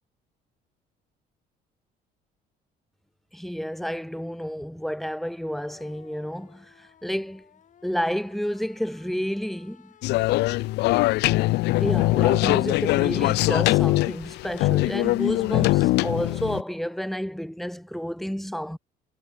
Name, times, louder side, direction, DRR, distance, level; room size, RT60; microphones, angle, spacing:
voice 1, 3.3-7.5 7.8-9.9 11.8-18.8, equal, ahead, 1.9 m, -30 dB
sound 1, 5.5-17.1, left 9 dB, 50° left, 6.9 m, -55 dB
sound 2, 10.0-16.6, left 20 dB, 85° left, 0.9 m, -22 dB
cardioid pair, 110°, 17 cm